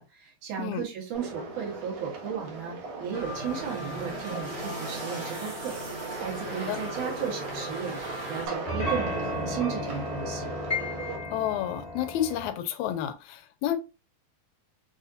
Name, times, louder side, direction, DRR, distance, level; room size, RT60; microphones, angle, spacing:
voice 1, 0.0-8.0 8.3-10.5, right 7 dB, 85° right, 3.2 m, -35 dB
sound 1, 1.1-11.2, right 4 dB, 60° right, 2.1 m, -40 dB
sound 2, 3.1-8.5, right 1 dB, 40° right, 1.4 m, -37 dB
sound 3, 6.8-8.2 8.7-12.5, left 1 dB, 30° left, 1.2 m, -34 dB
voice 2, 11.3-13.8, left 11 dB, 80° left, 1.9 m, -30 dB
6.2 x 2.8 x 2.5 m
omnidirectional pair, 3.5 m